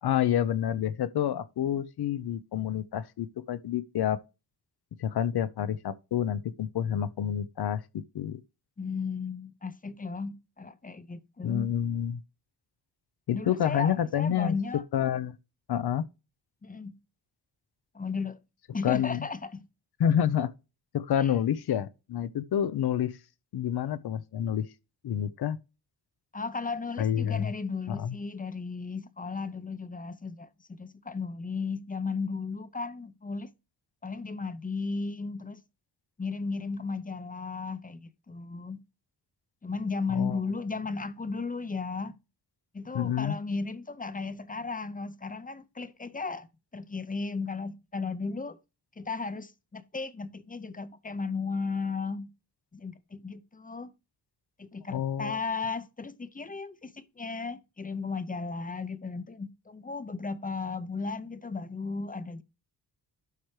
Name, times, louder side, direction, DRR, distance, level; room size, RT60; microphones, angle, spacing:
voice 1, 0.0-4.2 5.0-8.4 11.4-12.2 13.3-14.5 14.9-15.3 15.7-16.0 18.8-19.3 20.0-20.5 20.9-23.2 23.5-24.7 25.0-25.6 27.0-27.5 27.9-28.2 40.1-40.4 42.9-43.4 54.9-55.4, left 9 dB, 65° left, 0.7 m, -28 dB
voice 2, 8.8-11.7 13.3-14.8 16.6-16.9 17.9-18.4 18.7-19.6 21.2-21.3 26.3-33.5 34.0-35.6 36.2-38.8 39.6-42.2 42.7-48.6 49.0-52.3 52.7-53.9 54.6-62.4, left 4 dB, 20° left, 0.6 m, -35 dB
12.0 x 4.6 x 3.2 m
cardioid pair, 70°, 42 cm